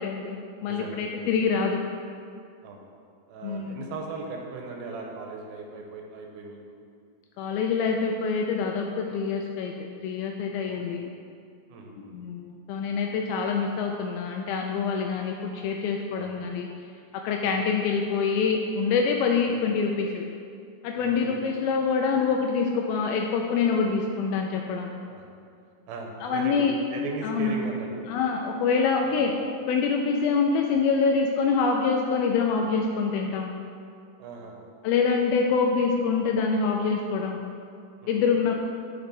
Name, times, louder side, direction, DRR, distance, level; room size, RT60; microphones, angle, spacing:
voice 1, 0.0-1.8 3.4-3.8 7.4-11.0 12.1-16.7 17.2-20.3 20.8-24.9 26.2-26.7 27.2-27.5 28.1-29.3 29.7-33.5 34.8-37.4 38.1-38.6, left 5 dB, 85° left, 1 dB, 2.3 m, -25 dB
voice 2, 0.7-1.4 2.6-2.8 3.3-6.6 10.6-10.8 11.7-12.2 16.1-16.4 17.5-17.6 19.4-19.6 21.0-21.4 25.1-25.3 25.9-26.7 26.9-28.1 29.0-29.3 34.2-34.5 38.0-38.4, right 3 dB, 85° right, 1 dB, 2.6 m, -38 dB
10.5 x 4.3 x 4.1 m, 2.3 s
omnidirectional pair, 4.4 m